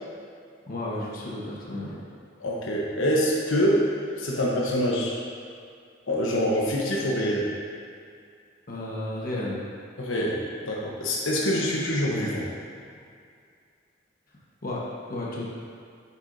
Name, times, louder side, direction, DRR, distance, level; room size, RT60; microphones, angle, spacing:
voice 1, 0.7-2.0 8.7-9.6 14.6-14.8 15.1-15.5, left 1 dB, 45° left, -5 dB, 1.2 m, -32 dB
voice 2, 2.4-3.9 4.2-5.1 6.1-7.5 10.0-12.5, equal, 85° left, -4 dB, 1.0 m, -25 dB
8.0 x 7.0 x 2.7 m, 2.3 s
head